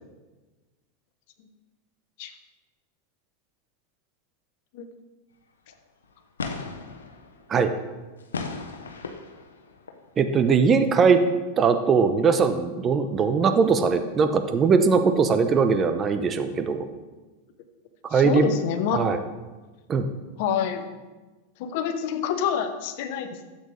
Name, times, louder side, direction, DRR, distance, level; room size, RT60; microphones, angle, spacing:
sound 1, 5.7-5.8 6.0-6.1 6.4-10.1 10.5-10.6, left 4 dB, 85° left, 0.9 m, -36 dB
voice 1, 10.2-11.2 11.6-16.9 18.1-18.5 18.9-19.2 19.9-20.1, right 5 dB, 30° right, 9 dB, 0.9 m, -20 dB
voice 2, 18.1-19.0 20.4-20.9 21.6-23.5, left 7 dB, 60° left, 8 dB, 1.0 m, -27 dB
12.5 x 8.0 x 3.4 m, 1.2 s
hypercardioid pair, 100°, 0 cm